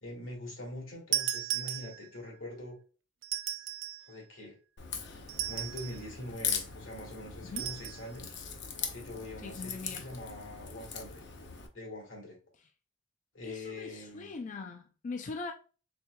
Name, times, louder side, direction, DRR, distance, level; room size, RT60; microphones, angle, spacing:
voice 1, 0.0-2.8 4.1-4.5 5.4-8.3 8.9-11.2 11.7-12.4 13.3-14.3, left 1 dB, 85° left, 2.1 m, -43 dB
sound 1, 1.1-2.3 3.2-4.1 5.3-6.0 7.6-8.0, right 12 dB, 85° right, 0.5 m, -35 dB
Crack, 4.8-11.7, left 6 dB, 65° left, 0.7 m, -40 dB
voice 2, 9.4-10.1 13.4-15.5, left 4 dB, 40° left, 0.3 m, -41 dB
4.2 x 3.7 x 2.2 m
head